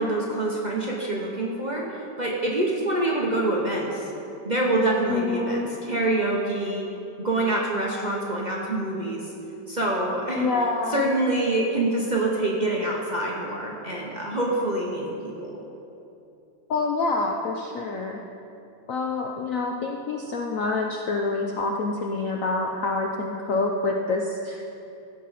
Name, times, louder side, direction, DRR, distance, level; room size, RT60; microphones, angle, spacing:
voice 1, 0.0-4.1 4.4-6.9 7.2-9.3 9.7-10.5 10.9-15.6, right 2 dB, 30° right, -3 dB, 0.9 m, -26 dB
voice 2, 5.1-5.7 10.4-11.1 16.7-18.2 18.9-24.9, left 3 dB, 65° left, 1 dB, 0.8 m, -27 dB
15.5 x 7.4 x 4.1 m, 2.8 s
omnidirectional pair, 2.1 m